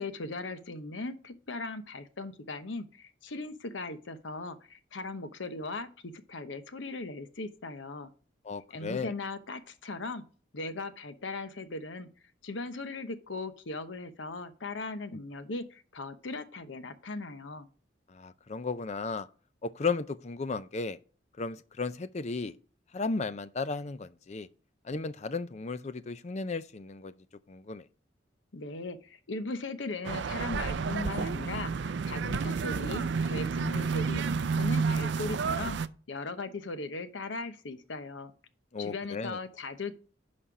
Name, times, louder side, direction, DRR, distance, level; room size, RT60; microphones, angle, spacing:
voice 1, 0.0-8.1 8.7-10.2 10.5-12.1 12.4-17.7 28.5-35.8 36.1-38.3 38.8-39.9, left 3 dB, 80° left, 0.9 m, -38 dB
voice 2, 8.4-9.1 15.1-15.2 18.1-19.3 19.6-21.0 21.4-22.6 22.9-24.5 24.8-27.1 27.5-27.8 38.7-39.4, left 4 dB, 35° left, 0.5 m, -34 dB
sound 1, 30.0-35.9, right 5 dB, 70° right, 0.4 m, -30 dB
11.0 x 4.3 x 4.9 m
head